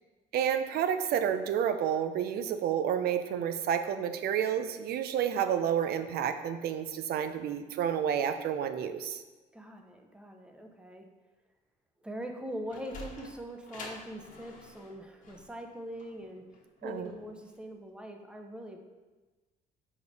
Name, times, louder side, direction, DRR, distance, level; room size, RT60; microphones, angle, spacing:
voice 1, 0.3-9.2 16.8-17.1, right 9 dB, 70° right, 9 dB, 0.5 m, -30 dB
voice 2, 9.5-11.1 12.0-16.4 16.8-18.8, equal, 5° right, 4 dB, 0.7 m, -42 dB
Sliding door, 12.4-17.6, left 2 dB, 50° left, 1.3 m, -48 dB
5.1 x 4.9 x 4.0 m, 1.2 s
cardioid pair, 110°, 17 cm